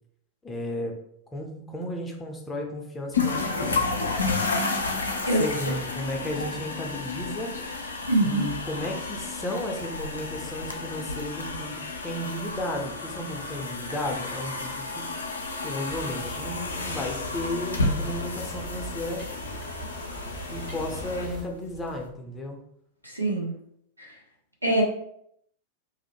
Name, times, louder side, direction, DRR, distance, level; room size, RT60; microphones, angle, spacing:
voice 1, 0.4-0.9 1.3-3.9 5.3-7.5 8.2-15.1 15.6-19.3 20.5-22.6, left 1 dB, 15° left, 1 dB, 0.5 m, -34 dB
sound 1, 3.1-22.0, left 3 dB, 75° left, 0.4 m, -32 dB
voice 2, 8.1-8.4 23.0-23.5 24.0-24.1 24.6-24.8, right 1 dB, 85° right, -2 dB, 0.6 m, -24 dB
sound 2, 15.9-21.4, equal, 45° right, 1.2 m, -40 dB
2.5 x 2.1 x 3.0 m, 0.71 s
figure-of-eight pair, 90°, 0 cm